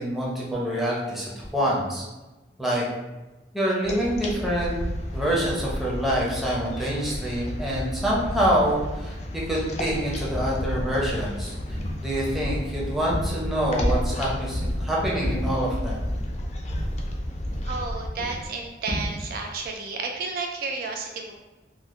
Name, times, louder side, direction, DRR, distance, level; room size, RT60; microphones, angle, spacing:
voice 1, 0.0-2.0 2.6-2.9 3.5-4.8 5.1-11.5 12.0-16.1, equal, ahead, -6 dB, 0.6 m, -26 dB
sound 1, 3.8-18.1, left 1 dB, 40° left, 0.4 m, -33 dB
sound 2, 9.9-10.0 10.3-10.6 11.0-11.2 11.7-12.1 12.4-13.5 13.8-14.2 14.5-14.8 15.2-16.3 16.7-17.9 18.2-18.5 18.9-19.2, equal, 40° right, 1.0 m, -30 dB
voice 2, 17.6-21.3, right 4 dB, 55° right, 2 dB, 0.3 m, -32 dB
3.8 x 2.0 x 3.0 m, 1.1 s
head